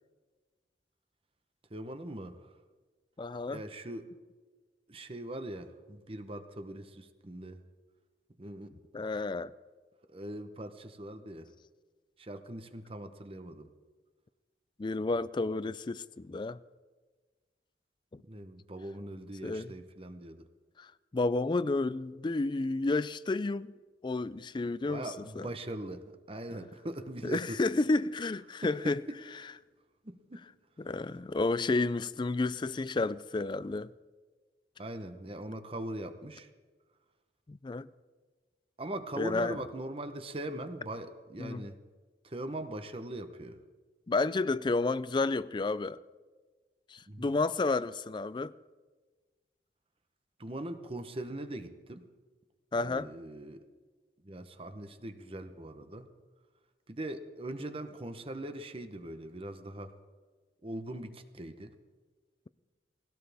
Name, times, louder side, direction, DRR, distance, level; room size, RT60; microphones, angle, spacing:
voice 1, 1.7-2.4 3.5-4.1 4.9-7.6 8.4-8.7 10.1-11.5 12.2-13.7 18.2-20.5 24.9-27.6 28.6-29.2 30.0-30.4 34.8-36.5 38.8-41.8 42.2-43.6 47.1-47.4 50.4-52.1 52.8-53.6 54.2-56.1 56.9-59.9 60.6-61.7, right 1 dB, 30° right, 0.9 m, -41 dB
voice 2, 3.2-3.6 8.9-9.5 14.8-16.6 18.1-18.2 19.4-19.7 20.8-20.9 21.1-23.7 24.0-25.1 25.4-25.5 27.2-29.0 30.8-33.9 37.5-37.9 39.2-39.6 41.4-41.6 44.1-46.0 46.9-48.5 52.7-53.1, left 3 dB, 25° left, 0.4 m, -31 dB
20.5 x 16.5 x 3.5 m
head